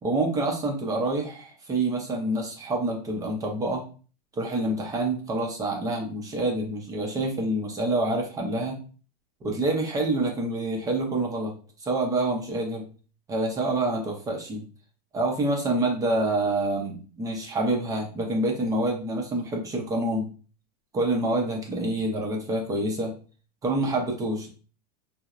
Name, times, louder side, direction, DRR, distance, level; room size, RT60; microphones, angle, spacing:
voice 1, 0.0-3.8 4.4-8.8 9.4-11.5 11.8-12.9 13.3-14.6 15.1-20.3 20.9-23.1 23.6-24.6, right 2 dB, 15° right, 0 dB, 0.5 m, -27 dB
2.8 x 2.0 x 2.3 m, 0.38 s
supercardioid pair, 145°, 21 cm